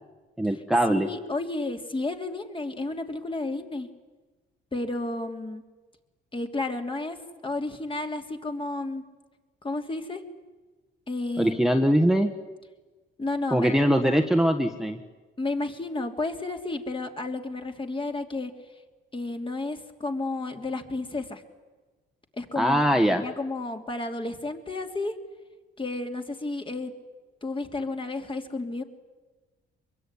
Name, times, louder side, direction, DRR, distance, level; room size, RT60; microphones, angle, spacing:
voice 1, 0.4-1.1 11.4-12.3 13.5-15.0 22.5-23.2, equal, ahead, 4 dB, 1.6 m, -22 dB
voice 2, 0.9-3.9 4.7-5.6 6.3-7.2 7.4-9.0 9.6-10.2 11.1-11.6 13.2-14.2 15.4-18.5 19.1-21.4 22.4-25.1 25.8-26.9 27.4-28.8, left 2 dB, 25° left, 5 dB, 3.0 m, -32 dB
24.0 x 22.5 x 10.0 m, 1.3 s
cardioid pair, 90°, 20 cm